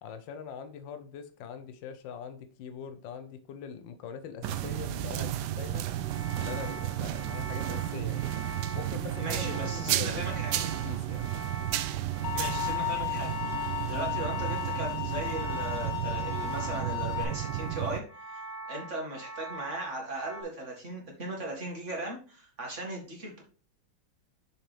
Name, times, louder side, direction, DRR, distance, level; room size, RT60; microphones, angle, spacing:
voice 1, 0.0-5.8 6.4-8.3 8.7-11.4, left 7 dB, 70° left, 8 dB, 1.5 m, -42 dB
sound 1, 4.4-18.0, right 13 dB, 75° right, 1.0 m, -33 dB
sound 2, 6.0-20.4, right 2 dB, ahead, 2.1 m, -43 dB
voice 2, 9.2-10.6 12.3-23.4, right 1 dB, 35° right, 0 dB, 2.1 m, -38 dB
sound 3, 12.2-17.2, left 16 dB, 55° left, 1.2 m, -34 dB
6.7 x 5.8 x 3.3 m, 0.36 s
omnidirectional pair, 2.2 m